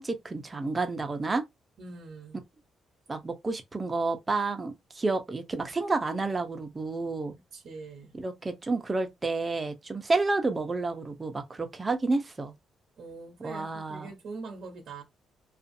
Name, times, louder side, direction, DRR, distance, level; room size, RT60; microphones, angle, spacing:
voice 1, 0.0-1.4 3.1-7.3 8.1-12.5 13.4-14.1, right 3 dB, 25° right, 0.7 m, -30 dB
voice 2, 1.8-2.4 7.5-8.1 13.0-15.0, right 3 dB, 65° right, 0.8 m, -43 dB
2.6 x 2.4 x 2.6 m
cardioid pair, 90°, 0 cm